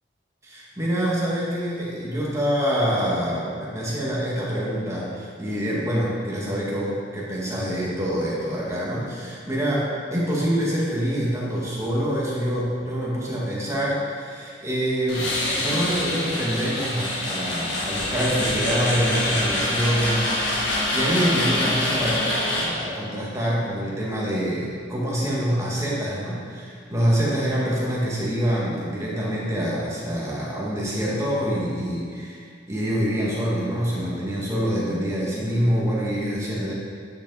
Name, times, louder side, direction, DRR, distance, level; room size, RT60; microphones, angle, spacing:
voice 1, 0.4-20.3 20.6-36.7, equal, 15° right, -6 dB, 2.1 m, -26 dB
sound 1, 15.1-22.6, left 1 dB, 70° left, 2.5 m, -25 dB
10.0 x 6.8 x 4.2 m, 2.1 s
head